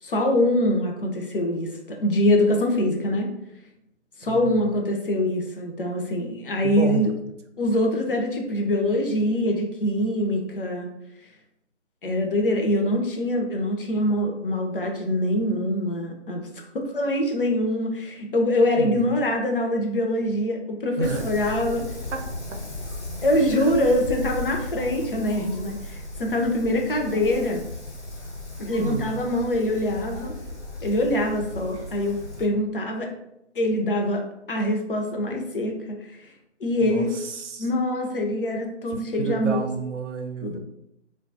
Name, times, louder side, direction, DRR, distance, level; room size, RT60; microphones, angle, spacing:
voice 1, 0.0-3.3 4.2-7.1 7.6-10.9 12.0-16.5 16.7-21.9 23.2-27.6 28.6-30.3 30.8-33.1 33.6-36.3 36.6-37.1 37.6-39.6 40.4-40.6, left 1 dB, 50° left, 2 dB, 0.5 m, -24 dB
voice 2, 4.3-4.7 6.6-7.0 18.8-19.1 21.0-21.2 22.1-22.2 23.5-23.7 28.8-29.2 36.8-37.7 39.2-40.6, right 5 dB, 75° right, 5 dB, 0.6 m, -30 dB
Wind, 21.0-32.4, left 2 dB, 70° left, 1.0 m, -36 dB
2.7 x 2.2 x 2.6 m, 0.83 s
figure-of-eight pair, 160°, 36 cm